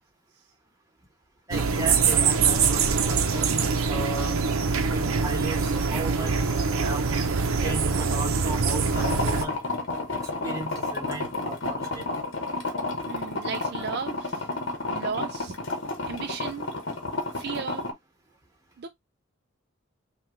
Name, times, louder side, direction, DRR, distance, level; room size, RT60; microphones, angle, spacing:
voice 1, 1.5-4.4 4.9-7.1 7.6-9.6 10.1-12.1, right 2 dB, 15° right, 1.3 m, -36 dB
sound 1, 1.5-9.5, right 5 dB, 80° right, 0.7 m, -24 dB
sound 2, 8.9-17.9, left 2 dB, 60° left, 1.0 m, -31 dB
voice 2, 13.1-14.5 14.9-15.6 16.1-16.7 17.3-17.9 18.8-18.9, right 6 dB, 50° right, 0.4 m, -35 dB
5.7 x 2.4 x 3.1 m
head